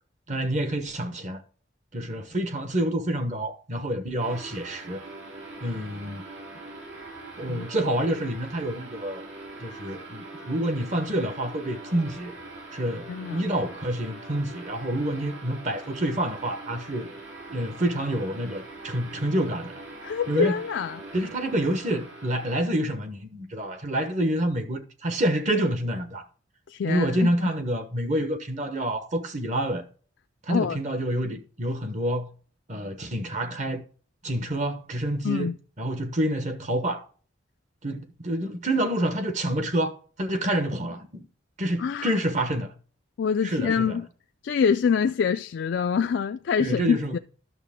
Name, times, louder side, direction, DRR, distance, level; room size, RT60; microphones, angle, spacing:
voice 1, 0.3-1.4 1.9-5.0 5.6-6.2 7.4-9.2 9.6-12.3 12.7-17.1 17.5-19.7 20.3-20.5 21.1-26.2 26.9-29.8 30.5-32.3 32.7-33.8 34.2-35.5 35.8-37.0 37.8-41.2 41.6-42.7 43.4-44.0 46.6-47.1, right 1 dB, 35° right, 1.0 m, -28 dB
sound 1, 4.2-22.6, right 2 dB, 75° right, 2.9 m, -42 dB
voice 2, 13.1-13.4 20.0-21.0 26.7-27.5 30.5-30.8 35.2-35.6 41.8-42.1 43.2-44.1 44.4-47.2, left 6 dB, 65° left, 0.3 m, -25 dB
11.0 x 6.6 x 3.6 m
head